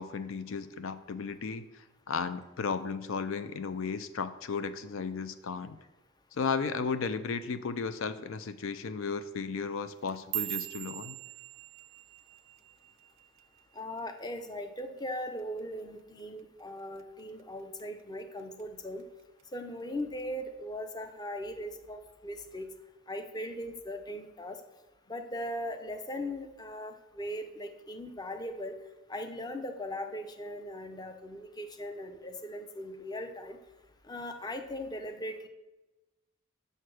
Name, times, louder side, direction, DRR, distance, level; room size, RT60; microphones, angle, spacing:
voice 1, 0.0-5.8 6.3-11.2, left 5 dB, 65° left, 12 dB, 0.4 m, -34 dB
sound 1, 9.9-14.3 14.6-15.0 15.4-15.8 16.2-16.4 17.0-17.4 17.8-18.6 19.0-19.4 20.2-20.3, right 24 dB, 60° right, 0.3 m, -41 dB
voice 2, 13.7-19.1 19.5-22.7 23.1-24.6 25.1-28.7 29.1-33.6 34.1-35.5, left 1 dB, 20° left, 6 dB, 0.6 m, -39 dB
6.6 x 6.6 x 6.3 m, 1.1 s
head